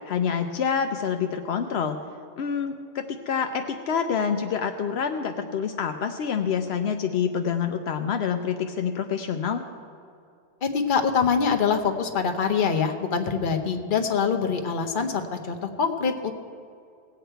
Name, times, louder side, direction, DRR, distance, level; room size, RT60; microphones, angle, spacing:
voice 1, 0.1-2.0 2.4-9.6, left 7 dB, 75° left, 6 dB, 0.9 m, -27 dB
voice 2, 10.6-16.3, left 6 dB, 55° left, 5 dB, 1.0 m, -24 dB
18.0 x 8.4 x 4.5 m, 2.5 s
omnidirectional pair, 1.1 m